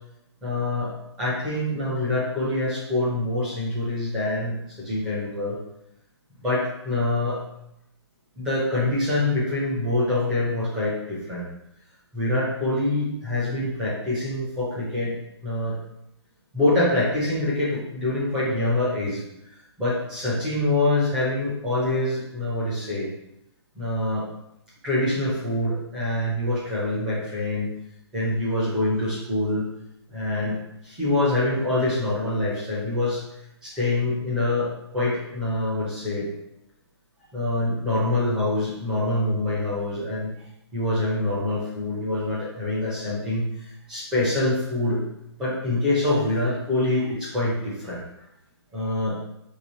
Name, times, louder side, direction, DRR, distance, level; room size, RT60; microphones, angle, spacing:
voice 1, 0.4-5.6 6.4-7.4 8.4-11.4 12.1-15.1 15.4-15.8 16.5-23.1 23.7-24.2 24.8-27.7 28.1-29.6 30.1-30.6 30.8-33.2 33.6-36.3 37.3-40.3 40.7-45.0 45.4-48.0 48.7-49.1, left 2 dB, 5° right, -8 dB, 0.5 m, -25 dB
3.1 x 2.9 x 4.1 m, 0.83 s
hypercardioid pair, 175°, 14 cm